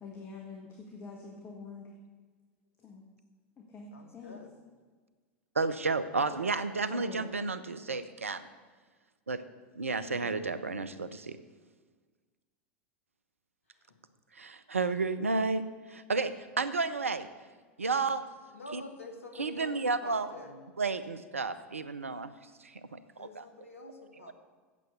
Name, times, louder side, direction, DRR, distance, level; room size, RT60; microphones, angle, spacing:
voice 1, 0.0-1.9 2.8-3.0 3.6-4.4 6.9-7.3 10.1-10.7, left 4 dB, 35° left, 0 dB, 1.7 m, -46 dB
voice 2, 3.9-4.5 6.1-6.6 13.7-14.0 18.1-18.2 18.5-20.7 23.2-24.3, left 2 dB, 80° left, 5 dB, 1.4 m, -48 dB
voice 3, 5.5-8.5 9.3-9.4 9.7-11.4 14.3-17.3 17.8-18.2 18.7-18.8 19.4-20.3 20.8-23.5, right 4 dB, 85° right, 12 dB, 0.6 m, -32 dB
8.4 x 7.7 x 8.2 m, 1.4 s
figure-of-eight pair, 85°, 7 cm